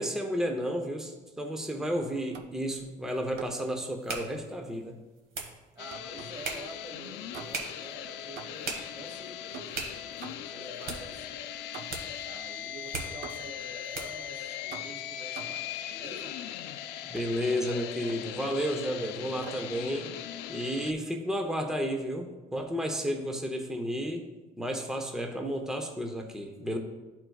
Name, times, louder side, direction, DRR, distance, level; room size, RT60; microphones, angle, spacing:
voice 1, 0.0-5.0 17.0-20.1 20.5-24.3 24.6-26.8, equal, 5° right, 3 dB, 0.7 m, -32 dB
sound 1, 2.3-2.7 3.4-3.7 5.4-6.5 7.3-7.8 8.4-8.8 9.5-10.7 11.7-12.2 13.2-13.7 14.7-15.7 17.1-17.3 17.7-18.3 19.4-19.8, right 6 dB, 80° right, 0.6 m, -46 dB
sound 2, 2.7-14.3, right 4 dB, 65° right, 1.3 m, -42 dB
voice 2, 5.7-9.9 10.3-11.4 12.2-16.4, right 2 dB, 25° right, 2 dB, 1.2 m, -48 dB
sound 3, 5.8-20.9, left 10 dB, 85° left, 0.4 m, -39 dB
11.0 x 4.5 x 2.3 m, 1.2 s
cardioid pair, 110°, 17 cm